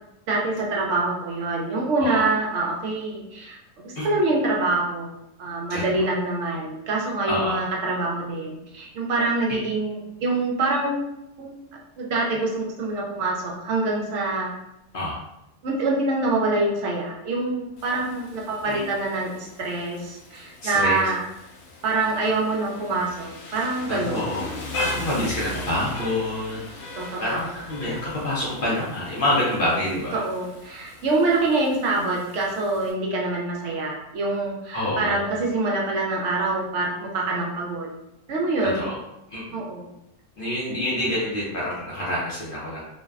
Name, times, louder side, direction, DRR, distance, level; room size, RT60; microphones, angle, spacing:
voice 1, 0.3-5.1 5.4-10.9 11.4-11.5 12.0-14.5 15.6-21.2 21.8-24.3 27.0-27.5 30.1-37.9 38.3-38.9 39.5-39.9, right 2 dB, 70° right, -3 dB, 0.8 m, -25 dB
voice 2, 2.0-2.3 4.0-4.1 5.7-6.0 7.3-7.6 14.9-15.2 18.6-18.9 20.6-21.1 23.9-26.7 27.2-30.2 34.7-35.3 38.6-39.0 39.3-39.6 40.4-42.8, left 1 dB, 60° left, -6 dB, 0.6 m, -27 dB
Rain, 17.8-32.9, left 2 dB, 85° left, 1.0 m, -38 dB
2.5 x 2.1 x 2.3 m, 0.85 s
omnidirectional pair, 1.4 m